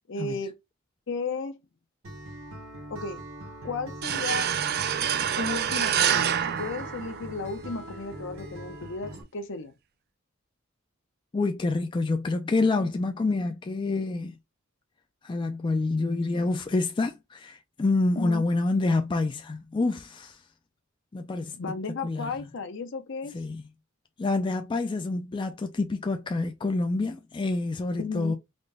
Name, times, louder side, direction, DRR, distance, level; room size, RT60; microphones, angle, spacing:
voice 1, 0.1-0.6 1.1-1.6 2.9-3.2 3.6-4.5 5.4-9.7 18.2-18.5 21.5-23.4 28.0-28.4, left 3 dB, 60° left, 0.6 m, -34 dB
Acoustic guitar, 2.0-9.2, right 1 dB, 70° right, 1.0 m, -42 dB
sound 1, 4.0-7.6, right 9 dB, 50° right, 0.4 m, -27 dB
voice 2, 11.3-14.4 15.2-20.4 21.1-21.5 22.0-22.3 23.3-23.7 24.2-28.4, left 3 dB, 25° left, 0.3 m, -27 dB
3.9 x 2.1 x 3.3 m
head